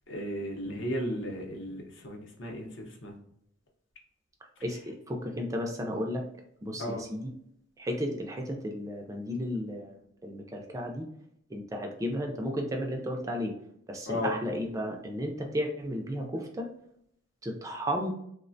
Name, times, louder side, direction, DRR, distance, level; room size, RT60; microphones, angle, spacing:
voice 1, 0.1-3.1 6.8-7.0 14.1-14.3, left 1 dB, 65° left, 1 dB, 0.7 m, -35 dB
voice 2, 4.6-6.2 6.6-7.3 7.8-11.1 11.5-13.5 13.9-16.7 17.4-18.1, equal, 15° right, 1 dB, 0.3 m, -33 dB
3.1 x 2.1 x 2.5 m, 0.72 s
head